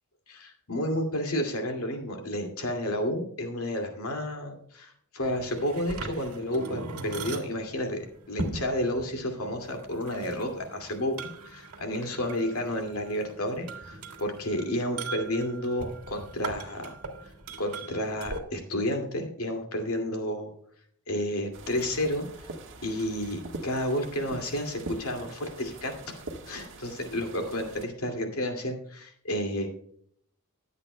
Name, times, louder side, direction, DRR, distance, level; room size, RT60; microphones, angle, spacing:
voice 1, 0.3-11.2 11.4-16.9 17.6-20.5 21.1-22.5 22.8-26.2 26.5-29.7, left 1 dB, 75° left, 4 dB, 2.3 m, -31 dB
sound 1, 5.2-18.4, right 3 dB, 90° right, 1.7 m, -40 dB
sound 2, 21.5-27.9, right 2 dB, 60° right, 1.5 m, -43 dB
20.5 x 8.1 x 2.2 m, 0.64 s
head